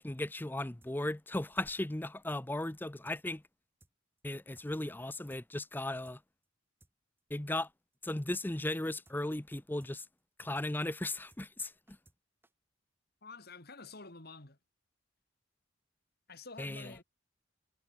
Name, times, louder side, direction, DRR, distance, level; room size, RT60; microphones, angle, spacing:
voice 1, 0.0-3.4 4.2-6.2 7.3-7.7 8.0-10.0 10.4-11.7 16.6-16.8, left 1 dB, 10° left, 0.6 m, -36 dB
sound 1, 0.8-0.9 1.2-1.3 1.5-1.7 1.9-2.0 2.3-2.4 2.7-2.8 3.0-3.2 3.4-3.5 3.8-4.2 4.5-4.7 4.9-5.0 5.3-5.4 5.7-6.2 6.4-6.5 6.8-6.9 7.2-7.3 7.5-7.7 7.9-8.0 8.3-8.4 8.7-8.8 9.0-9.2 9.4-9.5 9.8-9.9 10.2-10.3 10.5-10.7 10.9-11.0 11.3-11.4 11.7-12.2 12.4-12.5, right 1 dB, 10° right, 4.8 m, -65 dB
voice 2, 13.2-14.6 16.3-17.0, left 3 dB, 50° left, 3.1 m, -49 dB
head